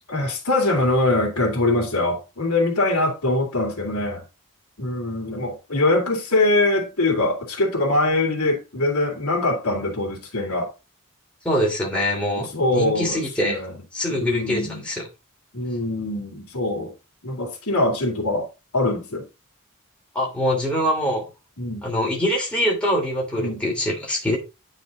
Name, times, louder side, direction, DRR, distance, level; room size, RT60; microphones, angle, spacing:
voice 1, 0.1-4.2 4.8-10.7 12.4-13.7 14.1-14.8 15.5-16.9 17.2-18.5 18.7-19.3 21.6-21.9 23.4-23.6, left 2 dB, 85° left, 2.7 m, -23 dB
voice 2, 11.4-13.6 13.9-15.0 20.1-21.2 21.8-24.4, equal, 5° left, 3.0 m, -24 dB
9.4 x 4.3 x 3.8 m
head